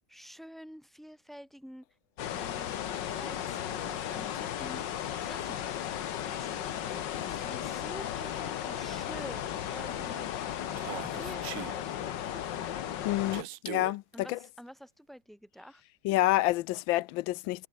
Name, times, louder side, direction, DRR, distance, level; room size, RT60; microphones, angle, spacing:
voice 1, 0.1-1.8 2.3-12.8 14.1-15.8, equal, ahead, 7.5 m, -49 dB
sound 1, 2.2-13.4, left 10 dB, 70° left, 1.7 m, -35 dB
Human voice, 10.8-11.7 13.3-13.9, right 15 dB, 90° right, 0.7 m, -40 dB
voice 2, 13.0-14.4 16.0-17.7, left 17 dB, 85° left, 1.3 m, -28 dB
omnidirectional pair, 2.1 m